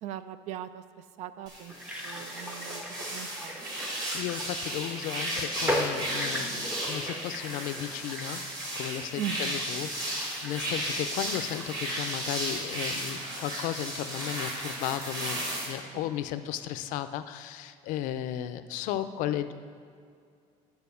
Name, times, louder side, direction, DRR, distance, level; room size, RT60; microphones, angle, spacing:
voice 1, 0.0-1.7 2.0-3.9 9.2-9.6 15.9-16.1, right 10 dB, 60° right, 13 dB, 0.4 m, -40 dB
sound 1, 1.5-15.7, right 1 dB, 30° right, 1.9 m, -34 dB
sound 2, 1.7-12.2 12.5-12.6, left 1 dB, 10° right, 0.7 m, -38 dB
voice 2, 4.1-19.5, left 11 dB, 75° left, 11 dB, 0.5 m, -35 dB
9.7 x 4.4 x 6.9 m, 2.3 s
cardioid pair, 175°, 14 cm